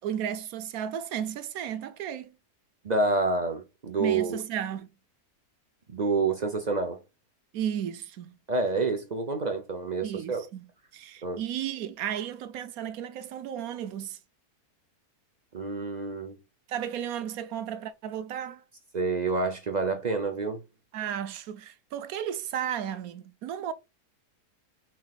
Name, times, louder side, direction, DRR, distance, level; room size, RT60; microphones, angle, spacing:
voice 1, 0.0-2.4 4.0-4.9 7.5-8.4 10.0-14.2 16.7-18.6 20.9-23.7, right 9 dB, 70° right, 1.1 m, -34 dB
voice 2, 2.8-4.4 5.9-7.0 8.5-10.4 11.2-11.4 15.5-16.4 18.9-20.6, right 3 dB, 45° right, 0.5 m, -28 dB
5.8 x 3.8 x 2.3 m
omnidirectional pair, 1.7 m